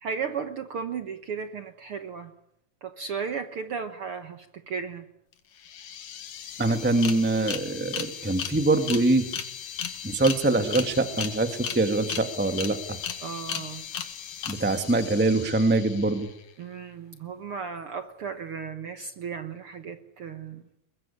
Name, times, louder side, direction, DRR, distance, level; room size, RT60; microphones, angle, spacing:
voice 1, 0.0-2.3 2.8-5.1 13.2-13.9 16.6-20.6, right 6 dB, 60° right, 9 dB, 1.5 m, -35 dB
sound 1, 5.3-5.4 5.6-16.4, left 8 dB, 70° left, 3.5 m, -36 dB
voice 2, 6.6-9.3 10.0-13.0 14.5-16.3, right 2 dB, 5° right, 8 dB, 0.8 m, -24 dB
22.5 x 21.5 x 10.0 m, 0.78 s
omnidirectional pair, 3.8 m